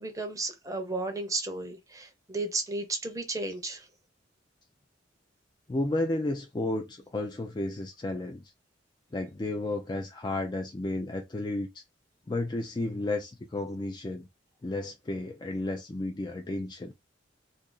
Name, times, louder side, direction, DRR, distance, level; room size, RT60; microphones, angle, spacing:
voice 1, 0.0-3.9, right 2 dB, 15° right, 0.7 m, -33 dB
voice 2, 5.7-8.4 9.1-11.8 12.3-14.3 14.6-16.9, left 2 dB, 25° left, 0.4 m, -32 dB
2.7 x 2.5 x 3.8 m
head